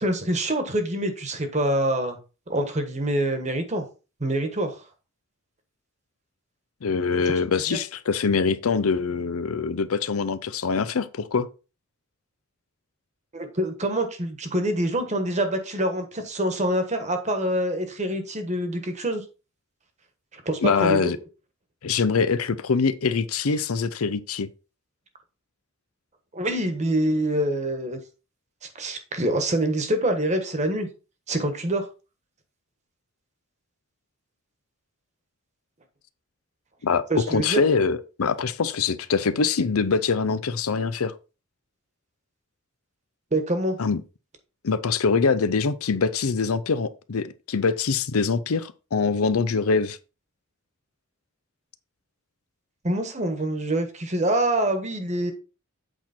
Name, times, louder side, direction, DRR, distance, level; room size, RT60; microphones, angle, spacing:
voice 1, 0.0-2.2 2.5-3.8 4.2-4.7 7.7-7.8 13.3-19.2 20.3-21.0 26.3-28.0 28.7-30.9 31.3-31.9 37.1-37.6 43.3-43.8 52.8-55.3, right 1 dB, 35° right, 1.3 m, -25 dB
voice 2, 6.8-11.5 20.6-21.2 21.8-24.5 36.8-41.1 43.8-44.0 44.6-50.0, left 5 dB, 90° left, 0.6 m, -24 dB
8.0 x 4.4 x 4.3 m
head